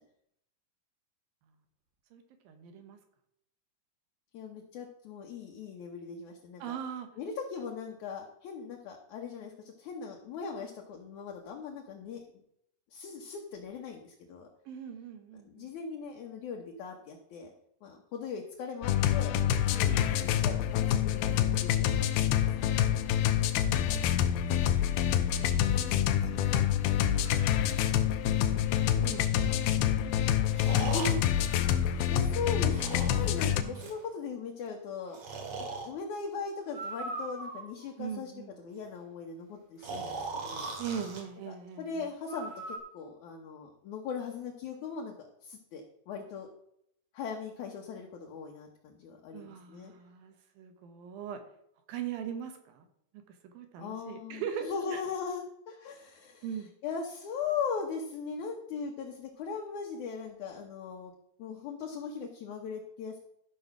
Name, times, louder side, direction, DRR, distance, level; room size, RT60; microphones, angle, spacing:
voice 1, 2.1-3.0 6.6-7.1 14.7-15.7 19.9-20.1 22.5-24.5 25.3-26.0 26.3-27.6 28.5-30.1 30.4-30.8 33.5-33.9 38.0-38.5 40.8-42.1 49.3-51.4 51.9-52.9 53.1-55.0 56.4-56.7, right 8 dB, 70° right, 7 dB, 2.9 m, -42 dB
voice 2, 4.3-6.6 7.2-12.2 12.9-14.5 15.4-17.5 17.8-19.3 19.7-22.5 30.8-35.2 35.6-38.3 38.6-40.8 41.5-45.1 45.4-46.5 47.1-49.9 53.8-56.5 56.8-61.1 61.4-63.2, left 5 dB, 65° left, 0 dB, 2.1 m, -39 dB
sound 1, 18.8-33.6, left 10 dB, 85° left, 2.6 m, -27 dB
Breathing, 28.7-28.8 30.5-32.3 32.7-34.0 35.1-35.9 36.7-37.9 39.8-41.2 42.3-42.8, right 3 dB, 50° right, 2.9 m, -39 dB
13.5 x 5.4 x 6.0 m, 0.73 s
omnidirectional pair, 4.4 m